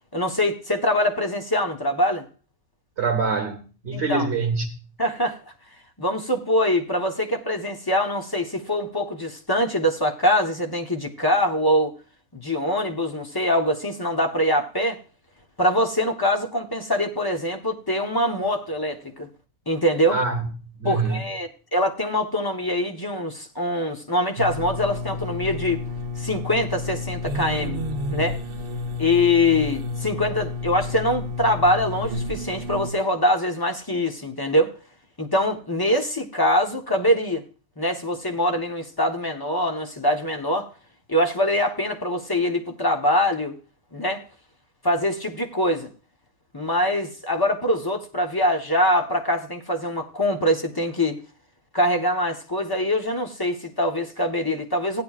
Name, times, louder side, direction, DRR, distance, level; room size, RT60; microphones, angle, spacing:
voice 1, 0.1-2.3 3.9-4.3 5.0-5.4 6.0-11.9 12.3-15.0 15.6-19.3 19.7-20.2 20.8-25.8 26.2-27.8 28.1-28.4 29.0-34.7 35.2-37.4 37.8-40.7 41.1-43.6 43.9-44.2 44.8-45.9 46.5-51.2 51.7-55.0, left 1 dB, 20° left, 0.8 m, -23 dB
voice 2, 3.0-4.8 20.1-20.4 20.8-21.2, right 4 dB, 50° right, 1.3 m, -25 dB
sound 1, 24.4-32.9, left 2 dB, 80° right, 1.4 m, -31 dB
15.5 x 10.5 x 2.4 m
omnidirectional pair, 1.7 m